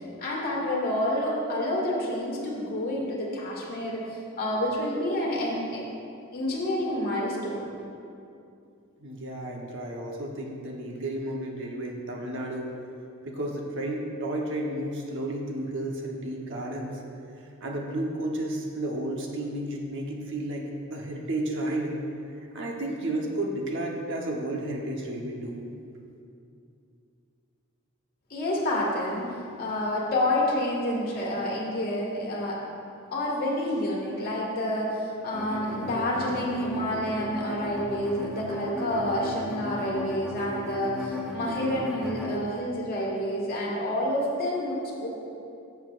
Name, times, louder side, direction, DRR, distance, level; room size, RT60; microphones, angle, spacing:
voice 1, 0.2-5.8 6.3-7.6 28.3-32.6 33.1-45.1, left 1 dB, 45° left, -4 dB, 1.9 m, -29 dB
voice 2, 9.0-12.7 13.2-17.0 17.6-20.6 20.9-22.0 22.5-25.6, right 1 dB, 60° right, 0 dB, 1.1 m, -32 dB
sound 1, 35.3-42.4, left 1 dB, ahead, 0.9 m, -36 dB
14.0 x 7.2 x 2.5 m, 2.6 s
head